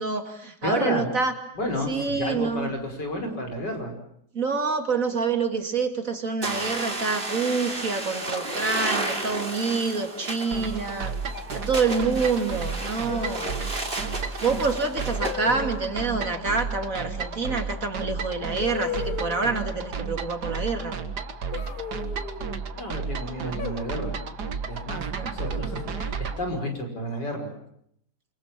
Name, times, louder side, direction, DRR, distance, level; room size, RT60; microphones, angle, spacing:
voice 1, 0.0-1.3 1.9-2.7 4.3-11.2 11.5-13.5 14.4-21.0 25.2-25.4, right 4 dB, 50° right, 6 dB, 2.9 m, -27 dB
voice 2, 0.6-1.1 1.5-3.9 22.8-24.2 24.7-27.5, left 1 dB, 75° left, 4 dB, 6.3 m, -31 dB
sound 1, 6.4-15.4, right 2 dB, 30° right, 3.1 m, -33 dB
sound 2, 8.3-9.2 10.4-10.8 11.3-11.7 13.1-13.7 15.2-15.8 17.7-17.8 18.6-19.6 21.5-22.6 23.6-24.2 25.4-26.0, left 7 dB, 55° left, 3.1 m, -36 dB
sound 3, 10.5-26.4, right 5 dB, 70° right, 2.3 m, -33 dB
28.0 x 25.5 x 7.5 m, 0.71 s
omnidirectional pair, 1.9 m